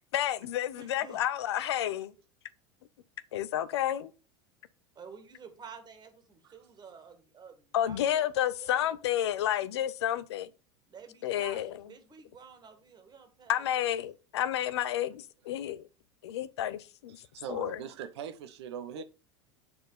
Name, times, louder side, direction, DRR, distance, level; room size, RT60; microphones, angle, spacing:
voice 1, 0.1-2.1 3.3-4.1 7.7-10.5 11.2-11.7 13.5-15.9 16.2-17.2 17.5-17.8 19.0-19.1, left 11 dB, 70° left, 0.6 m, -30 dB
voice 2, 0.8-1.2 5.0-8.3 8.6-8.9 10.9-13.9, right 6 dB, 30° right, 2.1 m, -50 dB
voice 3, 17.2-19.0, right 9 dB, 70° right, 0.9 m, -41 dB
8.6 x 4.3 x 5.1 m
hypercardioid pair, 85°, 15 cm